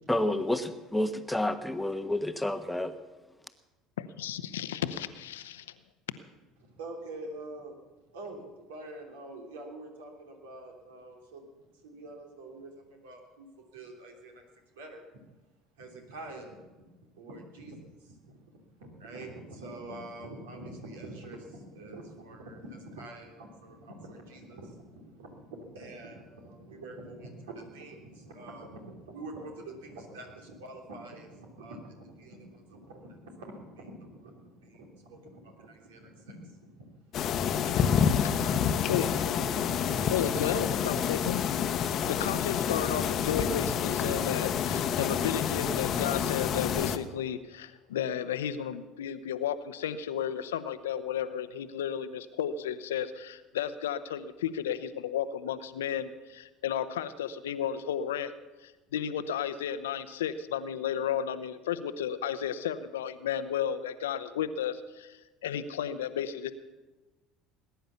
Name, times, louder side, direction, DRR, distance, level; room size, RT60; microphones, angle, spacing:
voice 1, 0.1-2.9, left 1 dB, 5° left, 9 dB, 1.2 m, -29 dB
voice 2, 4.0-5.6 38.4-38.5 38.9-39.1 40.1-41.7 42.1-58.3 58.6-66.5, left 9 dB, 75° left, 12 dB, 0.8 m, -33 dB
voice 3, 6.6-7.8 8.1-11.5 11.7-14.5 14.7-15.0 15.8-16.6 17.2-37.0 37.6-41.1, right 2 dB, 70° right, 2 dB, 3.1 m, -45 dB
sound 1, 37.1-47.0, left 8 dB, 45° left, 1.0 m, -28 dB
19.5 x 10.5 x 7.0 m, 1.2 s
figure-of-eight pair, 65°, 0 cm